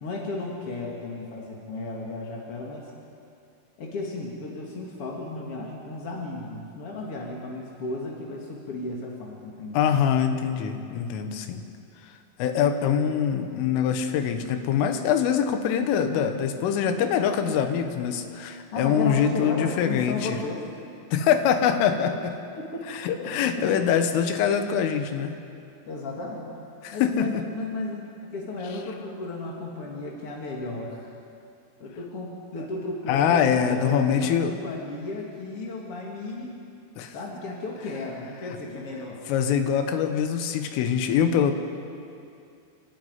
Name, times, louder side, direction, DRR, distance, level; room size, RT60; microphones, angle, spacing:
voice 1, 0.0-2.9 3.8-9.8 18.7-20.6 22.6-23.8 25.9-26.6 26.9-31.1 31.8-36.5 37.1-39.2, left 2 dB, 50° left, -2 dB, 1.8 m, -34 dB
voice 2, 9.7-11.6 12.0-20.4 21.1-22.3 22.9-25.4 26.8-27.4 33.1-34.6 37.0-37.2 39.3-41.5, left 8 dB, 85° left, 7 dB, 3.8 m, -24 dB
29.0 x 12.0 x 9.5 m, 2.5 s
omnidirectional pair, 5.6 m